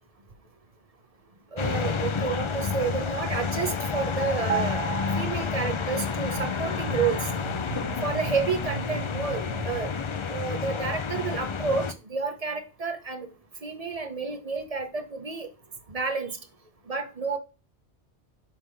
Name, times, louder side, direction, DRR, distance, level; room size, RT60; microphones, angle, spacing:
voice 1, 1.5-4.8 5.2-7.3 7.7-9.9 10.3-13.3 13.6-15.5 15.9-16.3 16.9-17.4, right 5 dB, 35° right, 0.9 m, -30 dB
sound 1, 1.6-11.9, left 5 dB, 50° left, 0.3 m, -30 dB
sound 2, 4.5-6.1 6.4-6.6, right 9 dB, 60° right, 0.9 m, -33 dB
7.6 x 3.6 x 6.4 m
omnidirectional pair, 1.2 m